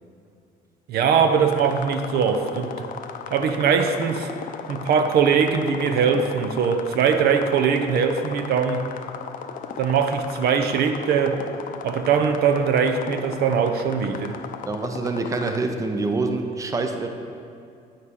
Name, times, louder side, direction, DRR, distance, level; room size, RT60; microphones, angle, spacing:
voice 1, 0.9-2.7 3.3-4.3 4.7-8.8 9.8-11.4 11.8-14.4, right 6 dB, 70° right, 7 dB, 0.6 m, -21 dB
sound 1, 1.5-15.6, left 7 dB, 50° left, 0.6 m, -37 dB
voice 2, 14.7-17.1, right 3 dB, 20° right, 5 dB, 0.6 m, -26 dB
9.4 x 6.4 x 3.6 m, 2.5 s
cardioid pair, 110°, 17 cm